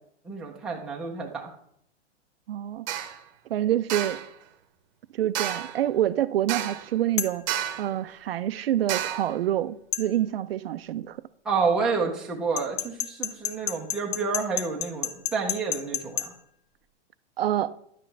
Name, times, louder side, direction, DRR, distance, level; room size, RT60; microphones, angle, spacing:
voice 1, 0.2-1.5 11.4-16.3, right 4 dB, ahead, 0.5 m, -29 dB
voice 2, 2.5-2.9 3.5-4.2 5.1-11.2 17.4-17.8, right 12 dB, 55° right, 0.5 m, -27 dB
sound 1, 2.9-3.2 3.9-4.3 5.3-5.8 6.5-6.9 7.5-7.9 8.9-9.3, right 11 dB, 40° right, 0.9 m, -30 dB
sound 2, 7.2-7.4 9.9-10.1 12.6-16.3, left 9 dB, 45° left, 0.8 m, -30 dB
10.5 x 7.5 x 3.3 m
hypercardioid pair, 160°, 35 cm